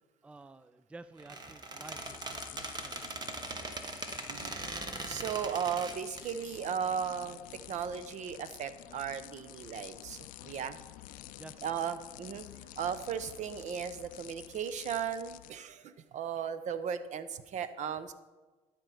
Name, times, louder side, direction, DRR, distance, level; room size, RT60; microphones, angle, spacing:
voice 1, 0.2-3.4 11.4-11.8, right 2 dB, 10° right, 13 dB, 0.3 m, -52 dB
Squeak, 1.2-6.3, right 2 dB, 30° right, 1.2 m, -40 dB
sound 1, 1.8-15.5, left 16 dB, 65° left, 0.4 m, -50 dB
voice 2, 5.0-10.8 11.6-12.5 12.8-18.1, right 7 dB, 55° right, 13 dB, 0.7 m, -36 dB
12.0 x 4.5 x 5.5 m, 1.2 s
hypercardioid pair, 70°, 15 cm